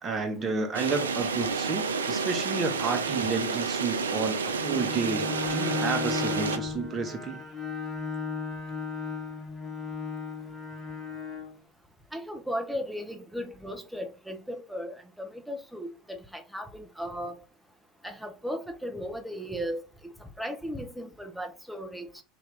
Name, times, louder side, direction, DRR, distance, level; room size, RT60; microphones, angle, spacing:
voice 1, 0.0-7.4, right 4 dB, 25° right, 1.1 m, -31 dB
sound 1, 0.7-6.6, right 5 dB, 75° right, 0.4 m, -30 dB
Bowed string instrument, 4.5-11.6, left 5 dB, 15° left, 1.2 m, -35 dB
voice 2, 12.1-17.4 18.0-19.8 20.4-22.2, equal, ahead, 0.9 m, -36 dB
3.9 x 2.8 x 3.6 m
figure-of-eight pair, 75°, 0 cm